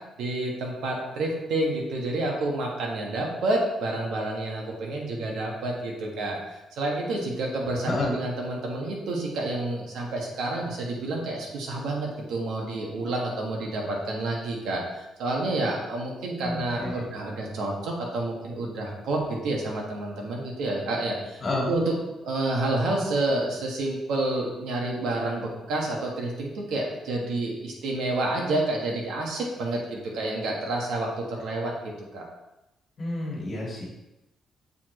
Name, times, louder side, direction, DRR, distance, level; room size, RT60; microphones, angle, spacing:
voice 1, 0.2-21.4 21.7-31.7 32.1-32.3, right 2 dB, 80° right, -1 dB, 1.5 m, -29 dB
voice 2, 16.4-17.0 21.4-21.7 33.0-33.8, left 2 dB, 35° left, -3 dB, 1.7 m, -29 dB
7.0 x 4.8 x 3.1 m, 0.96 s
cardioid pair, 160°, 0 cm